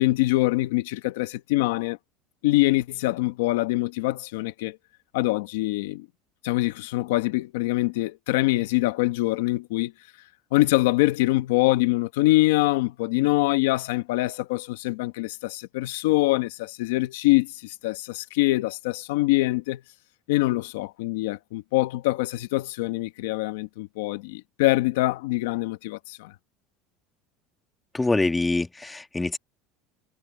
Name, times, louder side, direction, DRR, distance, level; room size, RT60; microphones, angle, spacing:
voice 1, 0.0-2.0 2.4-4.8 5.1-6.1 6.4-9.9 10.5-19.8 20.3-26.3, left 19 dB, 90° left, 1.3 m, -24 dB
voice 2, 27.9-29.4, left 2 dB, 10° left, 1.3 m, -25 dB
supercardioid pair, 130°, 0 cm